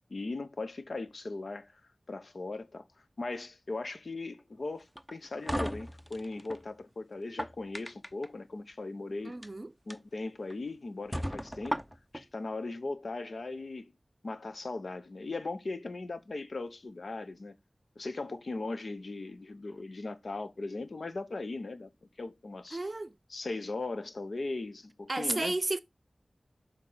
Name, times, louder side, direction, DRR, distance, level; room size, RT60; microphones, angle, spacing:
voice 1, 0.1-1.8 2.1-2.8 3.2-9.4 9.9-11.8 12.1-13.9 14.2-17.5 18.0-21.9 22.2-22.9 23.3-25.5, left 3 dB, 70° left, 0.9 m, -38 dB
sound 1, 4.9-6.6 7.2-8.3 9.3-9.5 9.9-10.0 10.5-10.6 11.1-12.2, equal, ahead, 0.7 m, -36 dB
voice 2, 9.2-9.7 22.7-23.2 25.1-25.8, right 2 dB, 45° right, 0.6 m, -32 dB
7.6 x 5.2 x 4.0 m
wide cardioid pair, 50°, 0 cm